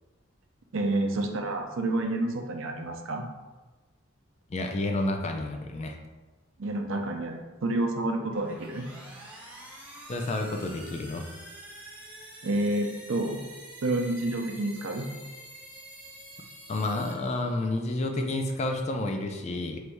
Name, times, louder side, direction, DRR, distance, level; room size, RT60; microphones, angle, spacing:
voice 1, 0.7-3.3 6.6-8.9 12.4-13.4 13.8-15.1, right 2 dB, 65° right, 3 dB, 0.5 m, -29 dB
voice 2, 4.5-6.0 10.1-11.3 16.7-19.8, left 2 dB, 30° left, 3 dB, 0.4 m, -30 dB
sound 1, 8.2-17.9, right 1 dB, 5° right, 0.7 m, -47 dB
3.2 x 2.6 x 4.5 m, 1.2 s
head